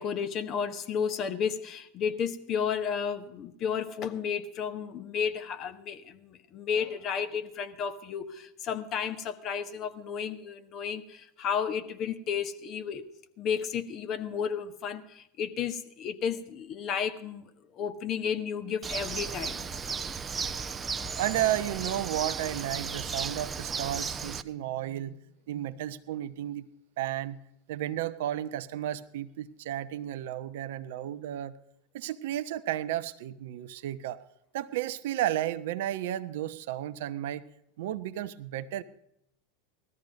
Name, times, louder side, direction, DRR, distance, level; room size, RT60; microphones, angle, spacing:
voice 1, 0.0-13.0 13.4-17.5 17.7-19.7, left 7 dB, 40° left, 1.6 m, -32 dB
Bird, 18.8-24.4, right 5 dB, 20° right, 0.8 m, -35 dB
voice 2, 21.1-25.2 25.5-26.6 27.0-27.4 27.7-31.5 31.9-34.2 34.5-37.4 37.8-38.8, right 12 dB, 65° right, 0.9 m, -33 dB
19.0 x 13.5 x 5.4 m
figure-of-eight pair, 85°, 0 cm